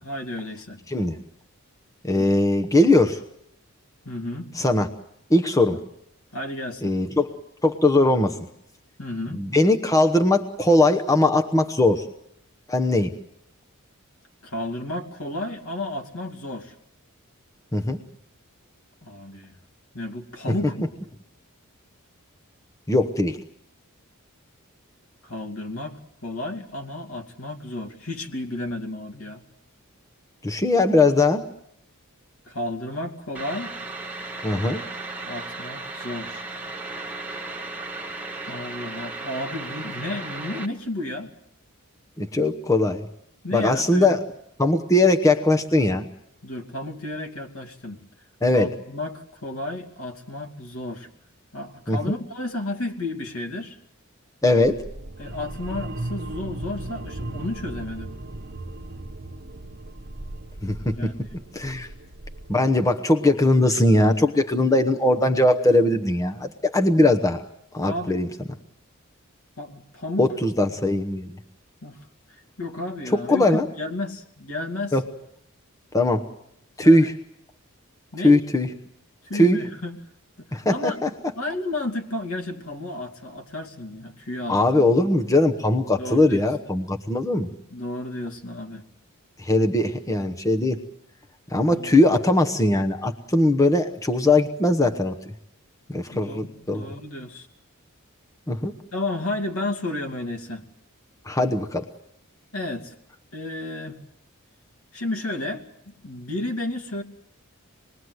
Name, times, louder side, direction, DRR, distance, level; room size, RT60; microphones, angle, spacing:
voice 1, 0.0-0.8 2.1-2.3 4.0-4.5 5.7-5.8 6.3-6.9 9.0-9.4 14.4-16.7 19.0-19.5 19.9-20.9 25.2-26.0 26.2-29.4 32.5-33.7 35.2-36.5 38.5-41.3 43.4-44.2 46.4-48.0 48.5-51.1 51.5-53.8 55.2-58.1 60.9-61.4 67.8-68.2 69.6-70.3 71.8-72.0 72.6-75.0 76.8-77.1 78.1-78.4 79.2-80.0 80.4-81.0 81.4-84.9 86.0-86.5 87.7-88.8 91.6-92.1 96.1-97.5 98.9-100.6 102.5-103.0 103.3-104.0 104.9-107.0, left 1 dB, 75° left, 4 dB, 2.6 m, -32 dB
voice 2, 0.9-1.2 2.0-3.2 4.6-4.9 5.3-5.8 6.8-8.4 9.3-12.1 12.7-13.1 17.7-18.0 22.9-23.4 30.4-31.4 34.4-34.8 42.2-43.1 43.5-44.2 44.6-46.1 48.4-48.7 51.9-52.2 54.4-54.8 60.6-61.0 61.5-61.9 62.5-67.4 67.7-68.3 70.2-71.4 73.3-73.7 74.9-75.0 75.9-76.2 76.8-77.2 78.2-78.7 79.3-79.6 80.5-81.1 84.5-87.5 89.4-90.8 91.5-95.2 95.9-96.9 98.5-98.7 101.2-101.9, left 2 dB, 15° left, 5 dB, 1.0 m, -20 dB
sound 1, 33.3-40.7, right 2 dB, 10° right, 1.8 m, -35 dB
sound 2, 54.6-62.6, right 1 dB, 50° right, 1.1 m, -36 dB
26.5 x 21.0 x 8.0 m, 0.75 s
head